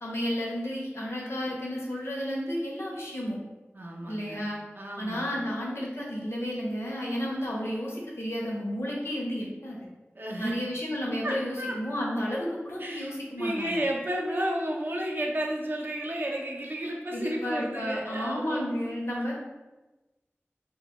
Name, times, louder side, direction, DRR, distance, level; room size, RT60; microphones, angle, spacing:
voice 1, 0.0-3.4 4.1-4.6 5.0-9.8 10.4-13.8 17.1-19.3, equal, 70° left, -3 dB, 0.6 m, -32 dB
voice 2, 3.7-4.4 4.7-5.3 10.2-10.5 11.2-11.7 12.8-13.1 13.4-18.6, right 1 dB, 50° right, -1 dB, 0.4 m, -32 dB
2.2 x 2.1 x 2.9 m, 1.1 s
wide cardioid pair, 50°, 5 cm